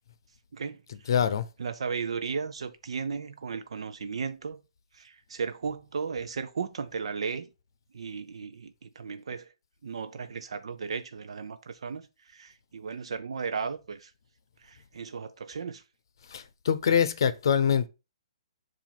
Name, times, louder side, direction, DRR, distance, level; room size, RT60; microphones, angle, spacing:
voice 1, 0.5-1.1 1.6-4.6 4.9-7.5 7.9-9.5 9.8-14.1 14.6-15.8, right 5 dB, 70° right, 0.5 m, -35 dB
voice 2, 1.1-1.4 16.3-17.9, left 7 dB, 45° left, 0.7 m, -24 dB
7.4 x 2.6 x 5.7 m
hypercardioid pair, 180°, 3 cm